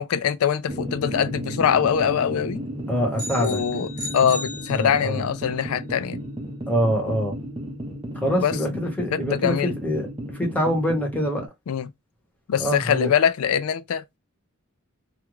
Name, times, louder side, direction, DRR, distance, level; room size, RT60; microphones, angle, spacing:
voice 1, 0.0-2.6 3.4-3.9 4.1-6.2 8.4-8.8 9.1-9.7 11.7-11.9 12.5-14.0, left 8 dB, 90° left, 0.4 m, -23 dB
sound 1, 0.7-11.5, equal, 25° right, 0.5 m, -34 dB
voice 2, 2.9-3.6 4.7-5.2 6.7-7.3 8.2-10.1 10.3-11.4 12.6-13.1, equal, 5° left, 0.9 m, -24 dB
sound 2, 3.2-5.4, left 2 dB, 35° left, 0.7 m, -36 dB
2.4 x 2.2 x 3.0 m
head